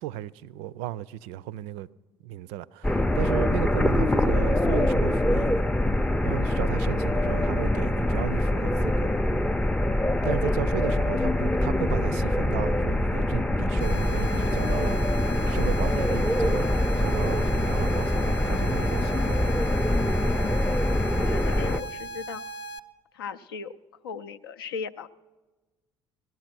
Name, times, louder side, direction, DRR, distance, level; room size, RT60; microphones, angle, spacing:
voice 1, 0.0-1.9 2.2-5.5 6.2-9.1 10.2-15.0 15.5-16.7 17.0-19.5, right 13 dB, 60° right, 0.4 m, -35 dB
sound 1, 2.8-21.8, left 1 dB, 10° left, 0.5 m, -24 dB
voice 2, 10.3-10.7 20.8-22.4 23.1-23.8 24.0-25.1, left 6 dB, 75° left, 0.5 m, -38 dB
sound 2, 13.8-22.8, right 2 dB, 50° left, 0.8 m, -38 dB
18.0 x 12.5 x 6.0 m
figure-of-eight pair, 55°, 12 cm